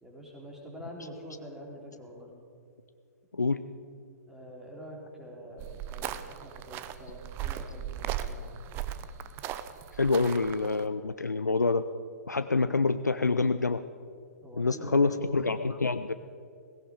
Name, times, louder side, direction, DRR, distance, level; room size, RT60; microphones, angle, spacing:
voice 1, 0.0-2.3 4.3-8.5 14.4-15.2, equal, 5° right, -1 dB, 3.1 m, -45 dB
sound 1, 5.6-10.8, right 11 dB, 25° right, 0.6 m, -37 dB
voice 2, 10.0-11.8 12.3-13.8 14.5-16.1, left 3 dB, 80° left, 11 dB, 0.5 m, -26 dB
17.0 x 16.5 x 4.9 m, 2.3 s
figure-of-eight pair, 115°, 9 cm